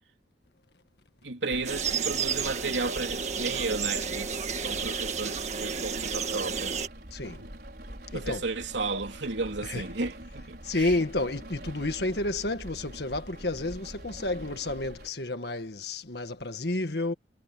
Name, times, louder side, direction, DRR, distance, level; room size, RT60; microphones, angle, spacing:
voice 1, 1.2-6.7 7.4-7.5 8.1-10.9, right 3 dB, 80° right, 3.3 m, -33 dB
Rain, 1.5-15.1, right 1 dB, 55° right, 5.9 m, -44 dB
sound 1, 1.6-6.9, right 6 dB, 40° right, 1.8 m, -31 dB
voice 2, 7.1-7.4 8.1-8.4 9.6-9.8 10.6-17.1, left 2 dB, 65° left, 1.7 m, -30 dB
head